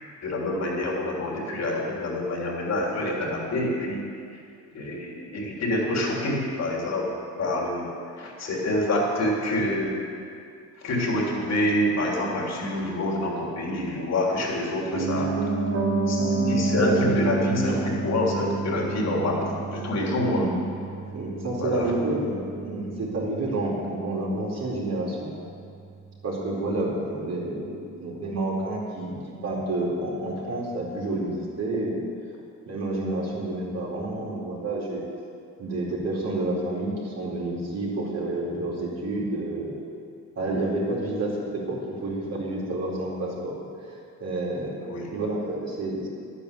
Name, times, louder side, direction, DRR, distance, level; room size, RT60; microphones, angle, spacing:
voice 1, 0.2-4.1 4.7-7.9 8.2-10.0 10.8-15.5 16.1-20.4 21.6-21.9 26.7-26.8 44.8-45.1, left 1 dB, 60° left, -2 dB, 3.5 m, -27 dB
Piano, 14.9-24.9 25.2-25.3, right 3 dB, 75° right, 3.0 m, -29 dB
voice 2, 20.2-20.6 21.1-25.3 26.2-29.2 29.4-32.0 32.7-35.0 35.6-39.8 40.4-43.6 44.2-44.8 45.1-46.1, right 2 dB, 55° right, -4 dB, 4.2 m, -29 dB
11.5 x 9.6 x 8.4 m, 2.4 s
cardioid pair, 90°, 30 cm